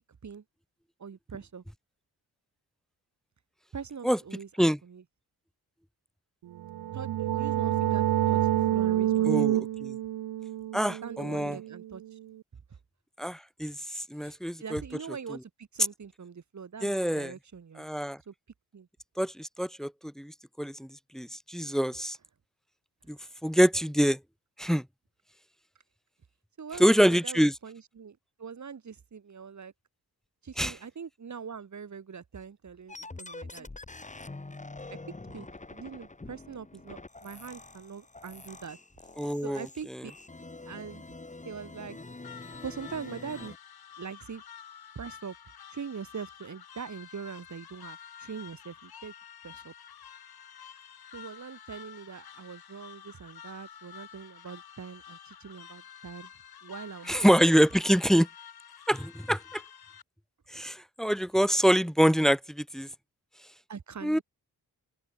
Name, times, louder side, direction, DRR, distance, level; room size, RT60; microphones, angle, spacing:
voice 1, 1.0-1.6 3.7-5.0 6.9-9.7 11.0-12.2 12.7-12.8 14.2-17.8 18.3-18.4 18.7-18.9 23.2-23.3 26.6-29.7 30.4-33.7 35.3-38.8 39.4-40.1 40.6-41.1 41.4-42.0 42.6-43.5 44.0-44.4 45.0-45.4 45.7-49.1 49.4-49.7 51.1-56.3 56.6-57.1 63.7-64.2, right 6 dB, 50° right, 7.6 m, -42 dB
sound 1, 6.6-12.1, right 13 dB, 90° right, 0.7 m, -28 dB
voice 2, 9.3-9.9 10.7-11.6 13.2-14.8 16.8-17.3 17.8-18.2 19.2-20.9 21.1-22.2 23.1-24.2 24.6-24.8 26.8-27.5 30.6-30.7 39.2-39.7 57.1-58.3 58.9-59.6 60.5-62.9 64.0-64.2, equal, ahead, 0.7 m, -25 dB
sound 2, 32.9-43.6, left 3 dB, 20° left, 5.2 m, -45 dB
sound 3, 42.2-60.0, left 9 dB, 80° left, 4.7 m, -49 dB
open air
wide cardioid pair, 140°, 37 cm